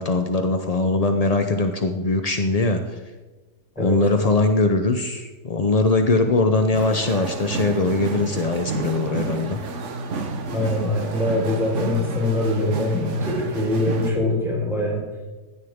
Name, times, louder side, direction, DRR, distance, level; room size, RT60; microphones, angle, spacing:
voice 1, 0.0-3.0 3.8-9.6, left 3 dB, 55° left, 6 dB, 0.4 m, -21 dB
sound 1, 6.7-14.1, right 4 dB, 50° right, 1.3 m, -30 dB
voice 2, 10.5-15.0, left 1 dB, ahead, -4 dB, 4.7 m, -23 dB
16.0 x 11.0 x 3.6 m, 1.2 s
omnidirectional pair, 1.7 m